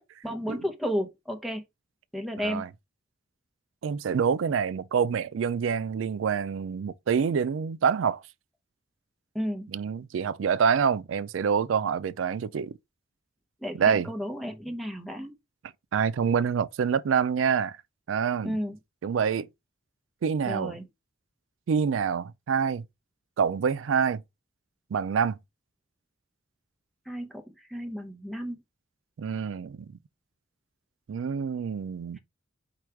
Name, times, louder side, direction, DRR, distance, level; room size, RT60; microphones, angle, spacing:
voice 1, 0.2-1.6 2.1-2.6 9.3-9.7 13.6-15.3 18.4-18.8 20.4-20.8 27.1-27.3 27.7-28.6, equal, ahead, 0.7 m, -32 dB
voice 2, 3.8-8.2 9.7-12.8 13.8-14.1 15.9-17.8 18.1-18.6 19.0-19.5 20.2-20.8 21.7-22.8 23.4-24.2 24.9-25.4 29.2-29.9 31.1-32.2, right 6 dB, 75° right, 0.4 m, -26 dB
4.8 x 2.3 x 4.4 m
head